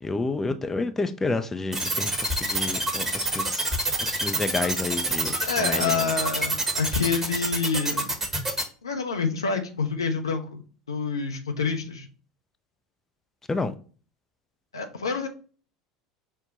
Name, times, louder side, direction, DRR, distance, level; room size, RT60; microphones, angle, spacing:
voice 1, 0.0-3.7 4.0-6.1 13.5-13.7, left 3 dB, 15° left, 0.4 m, -30 dB
sound 1, 1.7-8.6, right 1 dB, 15° right, 1.1 m, -26 dB
voice 2, 5.4-8.1 8.8-10.6 10.9-12.1 14.7-15.3, left 5 dB, 75° left, 0.6 m, -27 dB
5.4 x 2.2 x 3.9 m
figure-of-eight pair, 70°, 2 cm